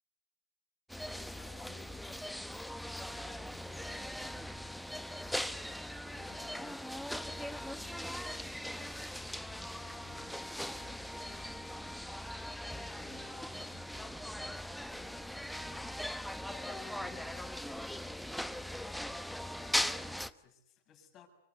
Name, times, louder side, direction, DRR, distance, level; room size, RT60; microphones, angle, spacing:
sound 1, 0.9-20.3, equal, ahead, 1.1 m, -40 dB
voice 1, 1.0-12.5 12.7-21.3, left 6 dB, 35° left, 4 dB, 7.1 m, -58 dB
25.5 x 25.0 x 8.3 m, 0.76 s
hypercardioid pair, 115°, 0 cm